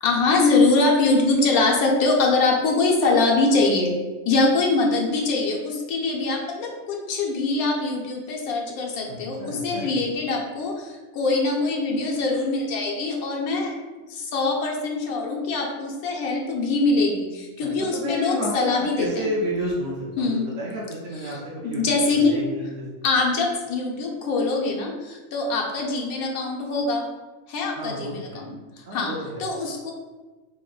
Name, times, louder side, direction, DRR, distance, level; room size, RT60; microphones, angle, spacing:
voice 1, 0.0-4.0 4.2-13.7 14.1-19.3 20.2-20.5 21.1-22.4 23.0-27.0 27.5-29.1 29.4-29.9, left 3 dB, 85° left, 0 dB, 1.2 m, -23 dB
voice 2, 9.1-10.0 17.9-20.3 20.6-21.8 22.1-23.0 27.8-28.4 28.9-29.4, equal, 65° right, -5 dB, 1.0 m, -30 dB
4.4 x 3.0 x 2.3 m, 1.2 s
omnidirectional pair, 1.5 m